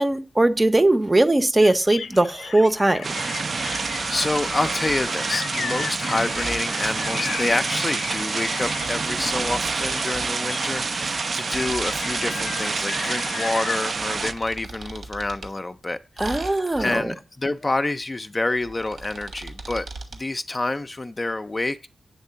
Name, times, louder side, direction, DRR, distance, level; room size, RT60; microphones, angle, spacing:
voice 1, 0.0-3.0 16.2-17.1, right 2 dB, 20° right, 0.7 m, -20 dB
sound 1, 1.6-13.8, left 6 dB, 85° left, 0.4 m, -35 dB
sound 2, 3.0-14.3, right 4 dB, 55° right, 0.4 m, -27 dB
sound 3, 3.5-5.1 6.3-7.0 8.4-10.3 11.5-12.6 13.9-15.5 16.2-17.0 18.5-20.2, right 3 dB, 75° right, 1.6 m, -39 dB
voice 2, 3.7-16.5 16.8-21.9, left 2 dB, 25° left, 0.4 m, -28 dB
8.3 x 3.6 x 6.7 m
cardioid pair, 85°, 0 cm